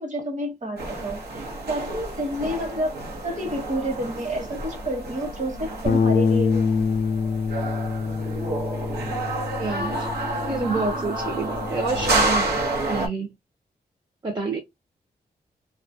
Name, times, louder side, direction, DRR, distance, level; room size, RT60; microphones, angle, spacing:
voice 1, 0.0-3.0 3.2-6.7, right 1 dB, 45° right, 1.1 m, -29 dB
sound 1, 0.8-13.1, right 2 dB, 80° right, 0.8 m, -29 dB
Bass guitar, 5.9-12.1, left 5 dB, 50° left, 0.4 m, -26 dB
voice 2, 9.6-10.1 10.5-12.5 12.9-13.3 14.2-14.6, right 3 dB, 25° right, 0.7 m, -28 dB
2.3 x 2.1 x 2.6 m
cardioid pair, 50°, 17 cm